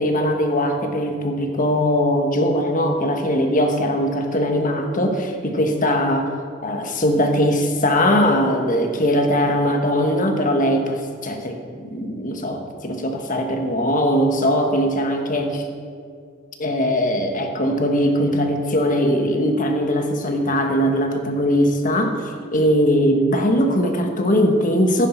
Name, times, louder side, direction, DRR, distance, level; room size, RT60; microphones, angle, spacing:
voice 1, 0.0-6.3 6.6-15.7 16.6-22.2 22.5-25.1, equal, 40° left, 4 dB, 1.4 m, -20 dB
15.0 x 9.9 x 4.5 m, 2.1 s
head